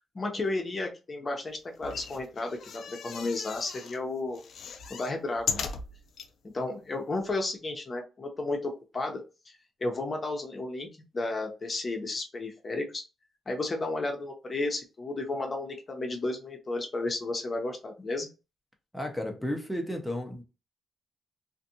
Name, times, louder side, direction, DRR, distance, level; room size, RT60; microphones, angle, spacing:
voice 1, 0.1-4.4 4.9-5.7 6.4-10.9 11.1-13.0 13.5-18.3, left 2 dB, 35° left, 0.7 m, -33 dB
sound 1, 1.7-4.0 4.3-6.3 6.9-7.0 7.2-7.3, left 6 dB, 70° left, 0.4 m, -37 dB
voice 2, 18.9-20.4, left 1 dB, ahead, 0.7 m, -33 dB
2.5 x 2.5 x 2.7 m
cardioid pair, 80°, 0 cm